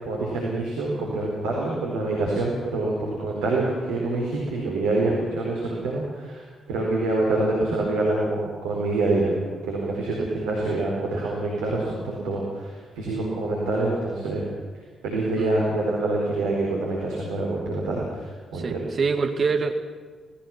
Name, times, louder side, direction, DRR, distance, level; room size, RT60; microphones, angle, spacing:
voice 1, 0.0-9.4 9.7-14.4 15.0-18.8, right 2 dB, 75° right, -3 dB, 4.3 m, -26 dB
voice 2, 18.5-19.8, right 4 dB, 45° right, 6 dB, 2.3 m, -25 dB
29.0 x 19.0 x 6.1 m, 1.5 s
figure-of-eight pair, 40°, 0 cm